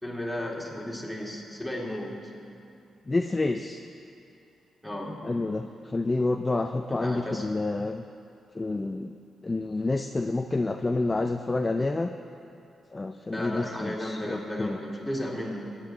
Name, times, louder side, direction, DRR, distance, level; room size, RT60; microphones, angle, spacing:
voice 1, 0.0-2.2 4.8-5.3 6.9-7.5 13.3-15.7, left 1 dB, 5° left, -4 dB, 2.7 m, -34 dB
voice 2, 3.1-3.8 5.2-8.0 8.5-9.1 9.4-12.1 12.9-14.8, left 2 dB, 20° left, 5 dB, 0.4 m, -28 dB
21.5 x 9.8 x 3.9 m, 2.6 s
cardioid pair, 95°, 0 cm